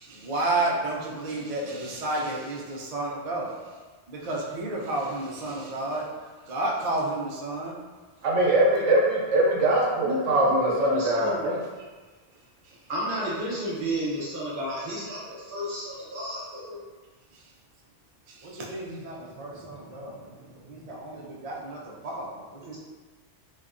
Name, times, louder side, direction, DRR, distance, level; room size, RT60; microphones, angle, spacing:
voice 1, 0.0-3.7 4.1-7.8 17.3-17.5 18.3-22.8, right 2 dB, 70° right, -3 dB, 0.3 m, -32 dB
voice 2, 8.2-11.6, right 1 dB, 90° right, -3 dB, 0.9 m, -22 dB
voice 3, 10.0-11.5 12.9-16.8, equal, 50° right, -7 dB, 1.0 m, -31 dB
2.8 x 2.1 x 2.4 m, 1.3 s
omnidirectional pair, 1.2 m